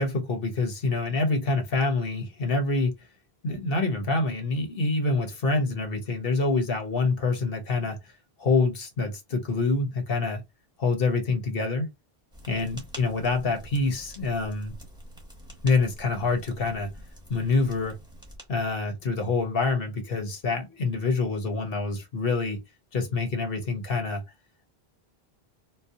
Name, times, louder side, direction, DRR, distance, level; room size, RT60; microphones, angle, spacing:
voice 1, 0.0-3.0 3.4-8.1 8.4-10.4 10.8-11.9 12.5-14.7 15.6-16.9 17.3-18.0 18.5-22.6 22.9-24.2, left 3 dB, 65° left, 1.2 m, -26 dB
sound 1, 12.3-18.8, equal, 5° right, 0.9 m, -46 dB
4.4 x 2.0 x 2.7 m
omnidirectional pair, 1.0 m